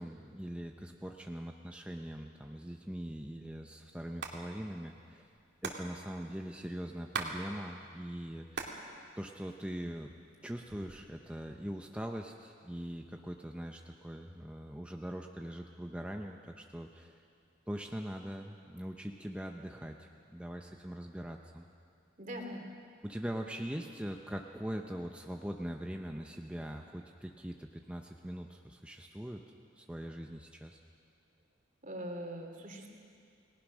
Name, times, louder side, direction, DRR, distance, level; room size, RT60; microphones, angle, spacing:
voice 1, 0.0-5.2 5.6-8.8 9.2-10.1 10.4-17.2 17.7-21.6 23.0-29.4 29.8-30.8, equal, 5° right, 2 dB, 0.8 m, -42 dB
Hands, 4.0-4.4 4.6-4.7 4.9-7.4 7.7-8.8 9.2-10.0 10.5-11.1, right 4 dB, 60° right, 2.3 m, -40 dB
voice 2, 22.2-22.6 31.8-32.9, equal, 40° right, 3 dB, 2.8 m, -41 dB
29.0 x 19.5 x 6.3 m, 2.3 s
head